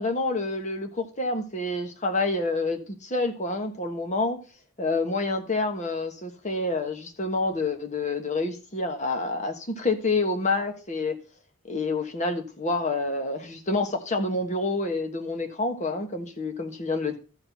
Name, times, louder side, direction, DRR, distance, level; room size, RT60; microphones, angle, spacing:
voice 1, 0.0-4.4 4.8-11.2 11.7-17.2, left 3 dB, 35° left, 5 dB, 1.3 m, -28 dB
13.0 x 4.5 x 5.7 m, 0.35 s
head